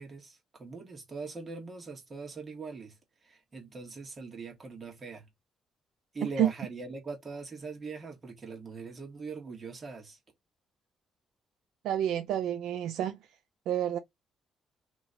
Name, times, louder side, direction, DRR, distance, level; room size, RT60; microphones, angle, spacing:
voice 1, 0.0-2.9 3.3-5.2 6.1-10.2, right 4 dB, 35° right, 1.4 m, -41 dB
voice 2, 6.2-6.5 11.8-13.2 13.7-14.0, right 10 dB, 85° right, 0.4 m, -29 dB
3.0 x 2.2 x 3.9 m
cardioid pair, 90°, 0 cm